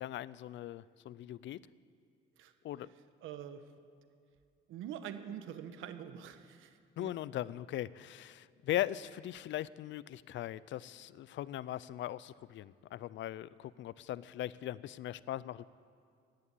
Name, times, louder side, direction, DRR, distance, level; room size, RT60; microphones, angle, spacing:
voice 1, 0.0-1.6 2.6-2.9 7.0-15.6, left 13 dB, 70° left, 19 dB, 0.5 m, -39 dB
voice 2, 3.2-3.7 4.7-7.1, right 9 dB, 90° right, 10 dB, 1.1 m, -45 dB
14.0 x 11.5 x 8.5 m, 2.2 s
cardioid pair, 90°, 20 cm